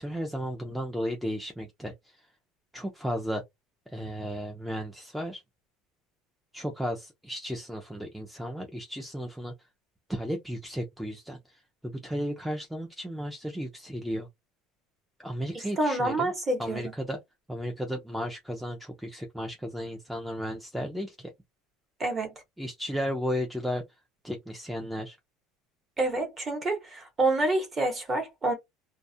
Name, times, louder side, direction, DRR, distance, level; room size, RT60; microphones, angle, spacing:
voice 1, 0.0-1.9 2.7-3.4 3.9-5.4 6.5-9.5 10.1-11.4 11.8-14.3 15.2-16.3 16.6-17.2 17.5-21.3 22.6-23.8 24.2-25.2, equal, ahead, 0.4 m, -34 dB
voice 2, 15.5-16.8 22.0-22.3 26.0-28.5, right 2 dB, 20° right, 0.9 m, -28 dB
2.3 x 2.0 x 2.6 m
cardioid pair, 145°, 0 cm